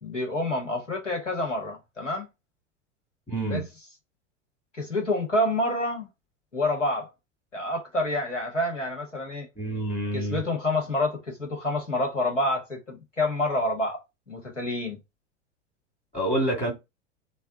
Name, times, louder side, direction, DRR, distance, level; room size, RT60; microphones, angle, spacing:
voice 1, 0.0-2.3 3.5-3.6 4.8-6.1 6.5-7.1 7.5-9.5 10.1-14.0 14.3-15.0, left 1 dB, 90° left, 1.3 m, -28 dB
voice 2, 3.3-3.7 9.6-10.4 16.1-16.7, right 1 dB, 15° left, 1.4 m, -27 dB
3.3 x 2.2 x 3.7 m
figure-of-eight pair, 85°, 36 cm